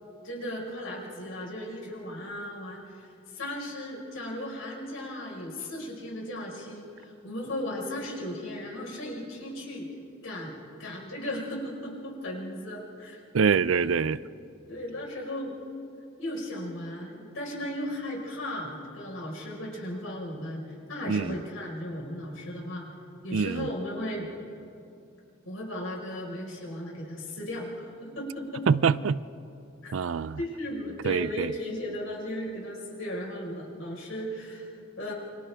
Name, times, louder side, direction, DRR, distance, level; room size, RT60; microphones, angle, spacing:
voice 1, 0.2-9.9 10.2-13.2 13.7-14.1 14.7-15.5 16.2-20.6 20.9-22.8 23.2-24.3 25.4-28.7 29.8-29.9 30.4-35.1, left 1 dB, 90° left, -2 dB, 5.0 m, -36 dB
voice 2, 13.3-14.2 21.1-21.4 23.3-23.7 28.7-29.2 29.9-30.4 31.0-31.5, right 6 dB, 85° right, 18 dB, 0.5 m, -25 dB
29.0 x 25.5 x 3.5 m, 2.5 s
head